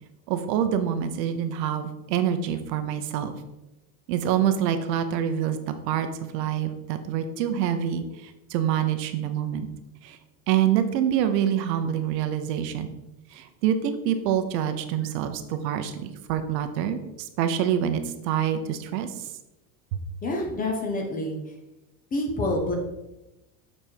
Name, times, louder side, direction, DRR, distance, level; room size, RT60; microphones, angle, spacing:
voice 1, 0.3-3.3 4.1-9.7 10.0-10.2 10.5-12.9 13.3-19.3, right 9 dB, 75° right, 8 dB, 1.0 m, -26 dB
voice 2, 20.2-21.4 22.1-22.7, left 1 dB, 15° left, 2 dB, 0.7 m, -27 dB
7.1 x 4.3 x 4.6 m, 0.96 s
supercardioid pair, 155°, 50 cm